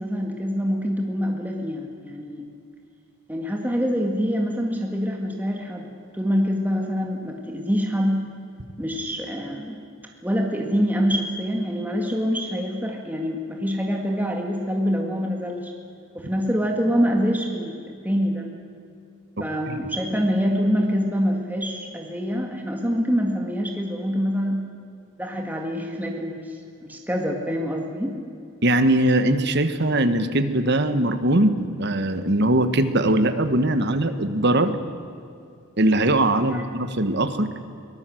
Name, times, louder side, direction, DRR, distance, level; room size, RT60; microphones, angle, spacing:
voice 1, 0.0-2.5 3.3-5.9 6.1-8.3 8.8-9.8 10.2-15.7 16.1-18.5 19.4-24.7 25.2-26.6 26.9-28.1 36.5-36.6, equal, 10° right, 1 dB, 1.9 m, -25 dB
voice 2, 28.6-34.7 35.8-37.5, right 1 dB, 55° right, 10 dB, 1.4 m, -21 dB
23.5 x 18.5 x 7.8 m, 2.5 s
head